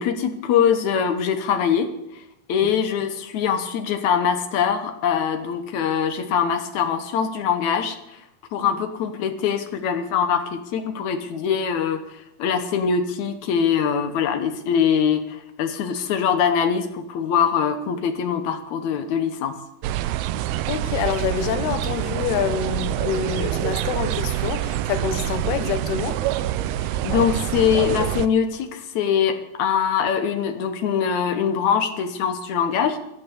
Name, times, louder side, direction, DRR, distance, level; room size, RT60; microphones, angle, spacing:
voice 1, 0.0-2.2 2.5-8.2 8.5-19.6 26.9-33.0, left 7 dB, 70° left, 8 dB, 1.8 m, -23 dB
sound 1, 19.8-28.3, right 13 dB, 85° right, 2.7 m, -26 dB
voice 2, 20.7-26.2, left 8 dB, 90° left, 9 dB, 3.2 m, -26 dB
14.5 x 10.5 x 8.4 m, 0.85 s
omnidirectional pair, 4.5 m